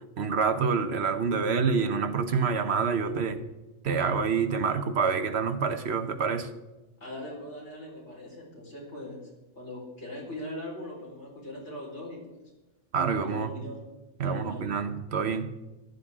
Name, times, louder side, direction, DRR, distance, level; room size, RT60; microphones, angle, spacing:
voice 1, 0.2-3.4 3.8-6.5 12.9-13.5 14.2-15.5, right 5 dB, 70° right, 1.2 m, -27 dB
voice 2, 7.0-9.3 9.5-12.4 13.1-13.8 14.2-14.7, left 1 dB, 75° left, 4.8 m, -40 dB
14.5 x 12.5 x 3.7 m
omnidirectional pair, 1.2 m